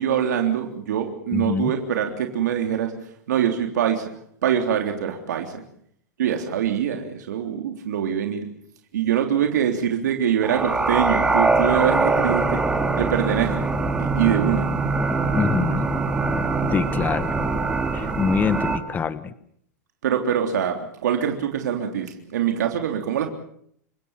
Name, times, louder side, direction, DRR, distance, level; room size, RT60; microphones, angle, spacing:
voice 1, 0.0-2.9 3.3-4.1 4.4-5.6 6.2-8.5 8.9-12.6 12.9-14.7 20.0-23.3, right 9 dB, 85° right, 4 dB, 3.5 m, -24 dB
voice 2, 1.3-1.7 15.3-15.9 16.7-17.5 17.9-19.3, left 6 dB, 20° left, 14 dB, 1.2 m, -25 dB
sound 1, 10.4-18.8, right 3 dB, 10° right, 2.7 m, -23 dB
29.5 x 17.5 x 7.4 m, 0.67 s
supercardioid pair, 140°, 9 cm